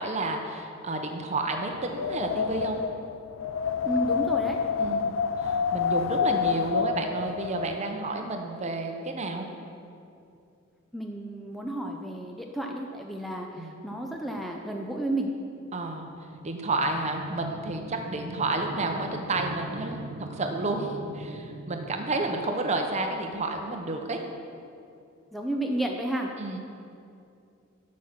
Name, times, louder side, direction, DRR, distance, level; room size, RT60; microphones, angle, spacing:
voice 1, 0.0-2.8 4.8-5.2 5.4-9.5 13.6-13.9 15.7-16.1 16.4-24.2 26.4-26.6, right 2 dB, 35° right, 4 dB, 0.8 m, -31 dB
Wind, 1.8-7.8, left 6 dB, 70° left, 0.3 m, -28 dB
voice 2, 3.8-4.6 10.9-15.3 25.3-26.3, right 1 dB, ahead, 1 dB, 0.5 m, -31 dB
sound 1, 16.0-23.5, right 1 dB, 85° right, 0.7 m, -42 dB
8.2 x 6.4 x 5.9 m, 2.5 s
head